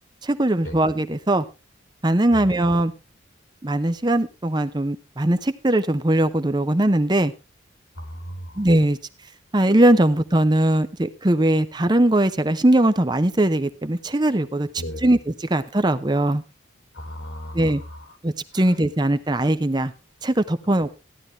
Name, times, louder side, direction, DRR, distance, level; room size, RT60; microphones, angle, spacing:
voice 1, 0.2-1.4 2.0-2.9 3.6-7.3 8.6-9.0 9.5-14.7 15.0-16.4 17.5-17.8 18.2-19.9 20.2-21.0, right 1 dB, 20° right, 12 dB, 0.7 m, -20 dB
voice 2, 8.0-8.6 14.8-15.1 16.9-18.0, equal, 85° left, 7 dB, 3.8 m, -35 dB
15.5 x 10.5 x 3.2 m, 0.28 s
head